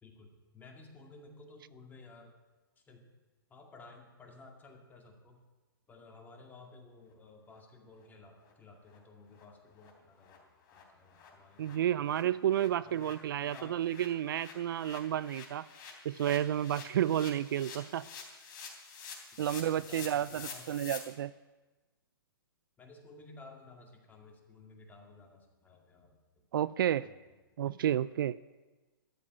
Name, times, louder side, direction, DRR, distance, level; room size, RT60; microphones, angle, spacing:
voice 1, 0.0-2.3 2.9-3.1 3.5-5.4 5.9-12.4 12.8-13.9 17.0-17.2 18.0-18.1 19.8-20.7 22.8-26.5 27.0-27.3, left 3 dB, 15° left, 1 dB, 2.2 m, -55 dB
sound 1, 8.0-8.1 8.4-8.5 8.9-9.0 9.3-9.4 9.8-9.9 10.2-10.4 10.7-10.8 11.1-21.0, left 6 dB, 35° left, 3.4 m, -49 dB
voice 2, 11.6-15.7 16.0-18.1 19.4-21.3 26.5-27.1 27.6-28.4, right 11 dB, 65° right, 19 dB, 0.4 m, -31 dB
13.0 x 7.5 x 9.7 m, 1.2 s
hypercardioid pair, 135°, 12 cm